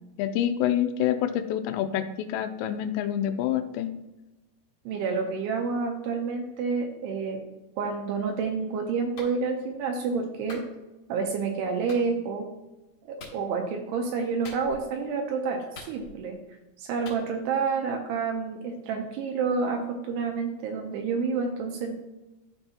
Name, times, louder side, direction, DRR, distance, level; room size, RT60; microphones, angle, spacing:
voice 1, 0.2-3.9, left 10 dB, 85° left, 7 dB, 2.7 m, -27 dB
voice 2, 4.9-7.4 7.8-10.6 11.1-12.5 13.0-16.4 16.8-21.9, right 5 dB, 80° right, 3 dB, 2.6 m, -29 dB
Clapping, 9.2-9.4 10.5-10.7 11.9-12.0 13.2-13.4 14.4-14.9 15.7-16.3 17.1-17.2, left 3 dB, 50° left, 2.4 m, -44 dB
12.5 x 4.5 x 2.8 m, 1.0 s
omnidirectional pair, 5.1 m